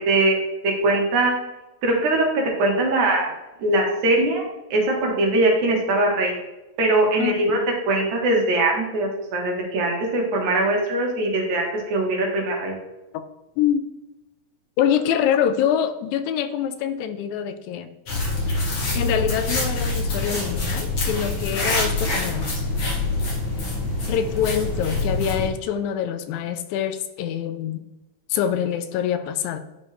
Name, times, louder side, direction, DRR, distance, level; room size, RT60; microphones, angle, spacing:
voice 1, 0.1-1.3 1.8-3.3 3.6-6.3 6.8-7.6 7.9-12.7, right 2 dB, 75° right, 0 dB, 2.6 m, -21 dB
voice 2, 7.2-7.7 13.1-13.2 13.6-13.9 14.8-17.9 19.0-22.5 24.1-27.8 28.3-29.6, left 9 dB, 80° left, 10 dB, 1.9 m, -25 dB
sound 1, 18.1-25.5, left 2 dB, 45° left, 2.3 m, -25 dB
10.0 x 4.2 x 3.2 m, 1.0 s
omnidirectional pair, 3.4 m